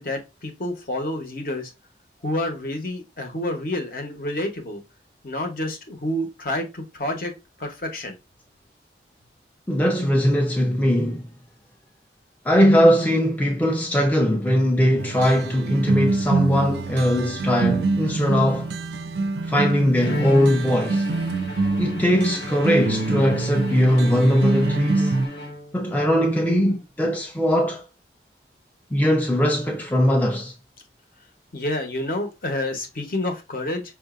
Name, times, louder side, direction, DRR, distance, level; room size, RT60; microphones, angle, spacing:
voice 1, 0.0-1.7 2.2-4.8 5.2-7.3 7.6-8.2 31.5-33.8, left 1 dB, 50° left, 0.9 m, -28 dB
voice 2, 9.7-11.3 12.5-18.7 19.5-21.1 21.8-25.1 25.7-27.8 28.9-30.5, equal, 10° left, 0.4 m, -20 dB
sound 1, 15.0-25.3, right 3 dB, 70° right, 0.4 m, -25 dB
Bowed string instrument, 20.0-26.0, left 1 dB, 75° left, 1.0 m, -34 dB
5.8 x 2.5 x 2.4 m
head